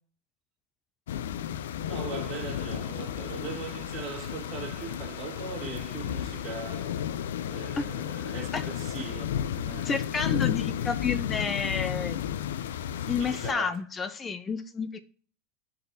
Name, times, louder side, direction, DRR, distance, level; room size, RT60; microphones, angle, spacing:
sound 1, 1.1-13.5, left 10 dB, 80° left, 0.4 m, -33 dB
voice 1, 1.8-10.0 12.9-13.8, right 5 dB, 40° right, 1.7 m, -40 dB
voice 2, 9.8-12.2 13.1-15.0, left 5 dB, 20° left, 0.5 m, -30 dB
10.0 x 4.0 x 2.6 m
hypercardioid pair, 110°, 0 cm